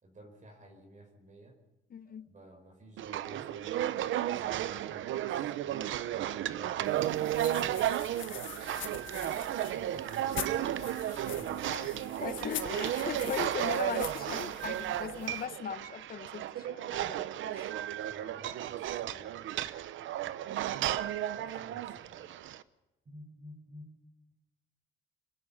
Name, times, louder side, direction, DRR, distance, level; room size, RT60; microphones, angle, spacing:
voice 1, 0.0-1.6 2.0-8.2 9.7-12.4 18.0-19.8 20.2-20.5 21.3-22.3 23.1-24.0, right 1 dB, 40° right, 5.4 m, -53 dB
voice 2, 1.9-2.3 11.6-11.9 12.2-17.7, left 8 dB, 50° left, 0.9 m, -39 dB
sound 1, 3.0-22.6, right 12 dB, 75° right, 0.8 m, -34 dB
sound 2, 6.8-15.5, left 11 dB, 75° left, 1.5 m, -45 dB
27.0 x 11.0 x 9.1 m
cardioid pair, 90°, 20 cm